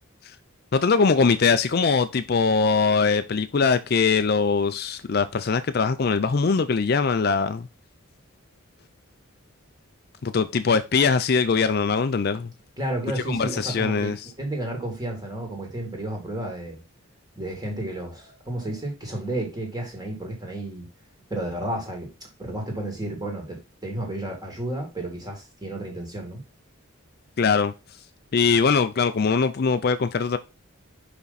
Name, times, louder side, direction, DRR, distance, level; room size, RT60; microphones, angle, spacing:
voice 1, 0.7-7.7 10.2-12.5 13.3-14.2 27.4-27.7 28.3-30.4, left 5 dB, 45° left, 0.4 m, -22 dB
voice 2, 12.8-16.8 17.4-20.9 21.3-26.4, right 1 dB, 20° right, 2.2 m, -32 dB
5.8 x 5.2 x 4.0 m
head